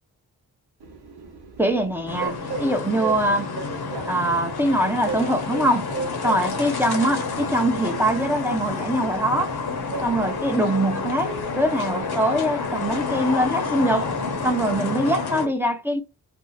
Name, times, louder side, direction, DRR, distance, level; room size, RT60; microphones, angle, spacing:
Train, 0.8-14.8, right 3 dB, 85° right, 1.0 m, -37 dB
voice 1, 1.6-3.5 4.1-5.9 6.2-9.5 10.0-14.1 14.4-16.0, right 1 dB, 5° right, 0.6 m, -23 dB
sound 1, 2.1-15.5, left 4 dB, 75° left, 0.9 m, -29 dB
2.7 x 2.4 x 3.9 m
wide cardioid pair, 75°, 38 cm